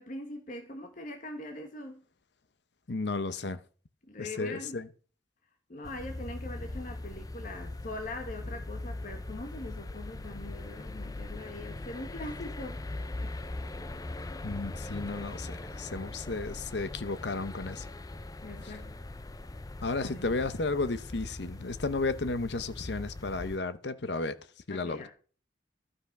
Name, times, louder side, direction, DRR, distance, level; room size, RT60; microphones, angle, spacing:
voice 1, 0.0-2.0 4.1-4.8 5.7-12.8 13.2-13.3 18.4-19.0 20.0-20.2 24.7-25.1, left 2 dB, 45° left, 1.5 m, -42 dB
voice 2, 2.9-3.6 4.2-4.9 14.4-17.9 18.6-18.7 19.8-24.4 24.7-25.0, left 3 dB, 65° left, 0.8 m, -33 dB
sound 1, 5.8-23.6, left 2 dB, 20° left, 0.5 m, -41 dB
12.5 x 5.7 x 5.9 m
head